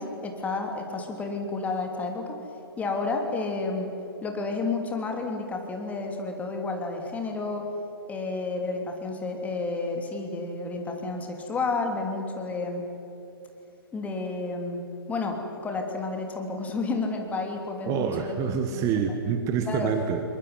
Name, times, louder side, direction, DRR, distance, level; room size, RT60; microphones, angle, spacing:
voice 1, 0.0-2.4 2.8-3.9 4.2-7.7 8.1-12.8 13.9-18.3 18.7-18.9 19.7-19.9, left 3 dB, 10° left, 3 dB, 3.0 m, -31 dB
voice 2, 17.9-20.2, right 7 dB, 25° right, 6 dB, 1.6 m, -27 dB
22.0 x 21.5 x 9.5 m, 2.8 s
figure-of-eight pair, 125°, 13 cm